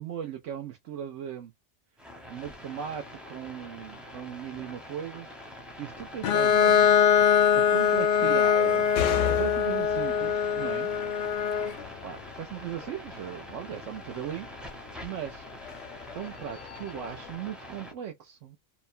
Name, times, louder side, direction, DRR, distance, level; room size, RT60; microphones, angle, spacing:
voice 1, 0.0-1.5 2.3-5.3 5.8-7.0 7.5-8.9 9.3-10.9 12.0-14.7 15.0-15.4 16.1-18.6, right 9 dB, 80° right, 1.0 m, -38 dB
sound 1, 2.0-17.9, left 1 dB, ahead, 0.5 m, -45 dB
Bowed string instrument, 6.2-11.8, left 8 dB, 60° left, 0.5 m, -23 dB
sound 2, 8.9-17.4, left 11 dB, 85° left, 0.9 m, -39 dB
2.9 x 2.1 x 2.5 m
omnidirectional pair, 1.3 m